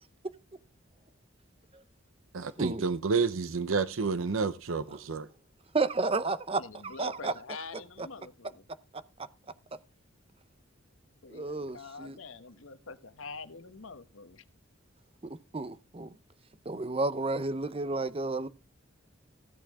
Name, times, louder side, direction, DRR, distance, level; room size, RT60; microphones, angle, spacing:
voice 1, 2.3-5.3, right 4 dB, 90° right, 0.7 m, -30 dB
voice 2, 5.7-7.3 11.3-12.2 15.2-16.1 16.7-18.5, right 3 dB, 30° right, 0.6 m, -32 dB
voice 3, 6.6-8.7 11.2-14.4, left 4 dB, 90° left, 1.1 m, -45 dB
15.0 x 8.2 x 3.6 m
head